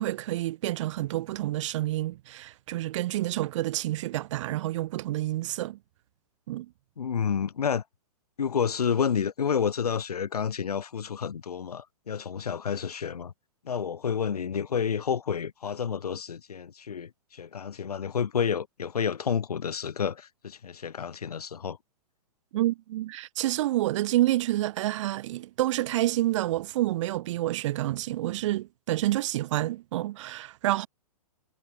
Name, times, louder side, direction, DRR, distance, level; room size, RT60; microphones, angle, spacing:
voice 1, 0.0-5.8 6.5-6.7 22.5-30.9, right 15 dB, 55° right, 0.4 m, -28 dB
voice 2, 7.0-7.8 8.4-13.3 13.6-21.8, left 7 dB, 85° left, 1.5 m, -30 dB
hypercardioid pair, 130°, 19 cm